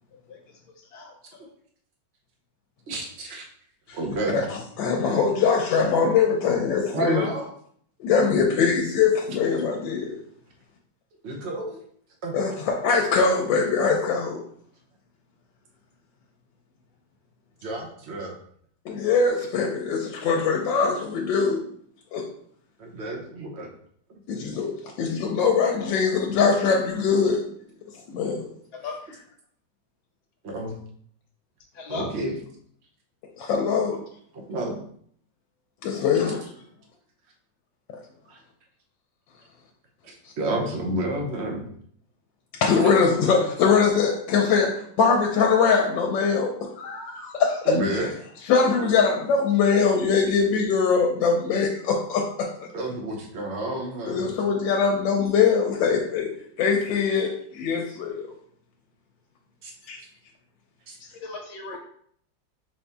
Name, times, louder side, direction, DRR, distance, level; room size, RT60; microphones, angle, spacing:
voice 1, 0.9-1.4 28.8-28.9 31.7-32.1 61.0-61.8, left 4 dB, 65° left, 1 dB, 1.5 m, -37 dB
voice 2, 2.9-3.4 3.9-4.4 6.9-7.5 11.2-11.8 12.2-12.3 17.6-18.3 22.8-23.7 30.4-30.7 31.9-32.4 34.5-34.8 38.3-38.4 40.0-41.7 42.8-42.9 47.6-48.1 52.7-54.3 59.6-59.7 60.9-61.0, right 2 dB, 45° right, 1 dB, 0.9 m, -30 dB
voice 3, 4.8-7.3 8.0-10.2 12.3-14.4 18.8-21.6 22.1-22.2 24.3-27.4 28.1-28.4 33.4-34.0 35.8-36.4 42.6-47.7 48.5-52.7 54.1-56.3 56.6-58.2 59.9-60.0, left 5 dB, 90° left, 0 dB, 1.4 m, -22 dB
5.3 x 2.7 x 3.4 m, 0.63 s
omnidirectional pair, 2.0 m